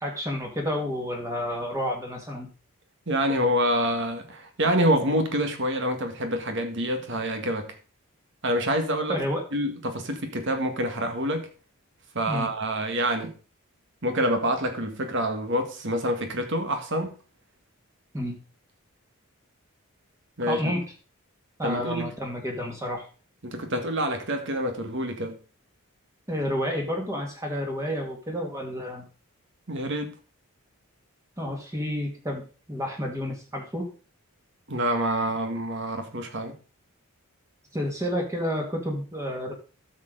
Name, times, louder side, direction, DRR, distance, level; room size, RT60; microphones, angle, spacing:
voice 1, 0.0-2.5 9.1-9.4 12.3-12.5 18.1-18.4 20.5-20.8 21.6-23.1 26.3-29.1 31.4-32.4 32.7-33.9 37.7-39.5, equal, 15° right, 1.8 m, -30 dB
voice 2, 3.1-7.7 8.4-9.2 9.5-11.5 12.2-13.3 14.0-17.1 20.4-20.7 21.6-22.1 23.4-25.4 29.7-30.1 34.7-36.5, equal, 55° right, 1.7 m, -27 dB
12.0 x 6.7 x 3.8 m
head